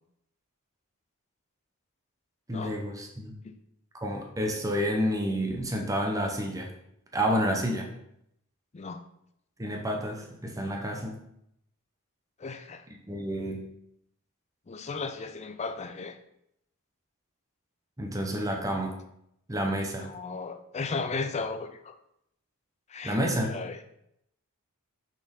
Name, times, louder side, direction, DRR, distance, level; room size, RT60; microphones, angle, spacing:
voice 1, 2.5-3.3 4.0-6.7 7.1-7.9 9.6-11.2 13.1-13.7 18.0-19.0 19.5-20.1 23.0-23.5, equal, 15° right, 1 dB, 0.8 m, -29 dB
voice 2, 12.4-12.8 14.7-16.2 20.0-21.9 22.9-23.2 23.5-23.8, left 4 dB, 30° left, 9 dB, 0.4 m, -35 dB
6.2 x 4.2 x 3.7 m, 0.76 s
head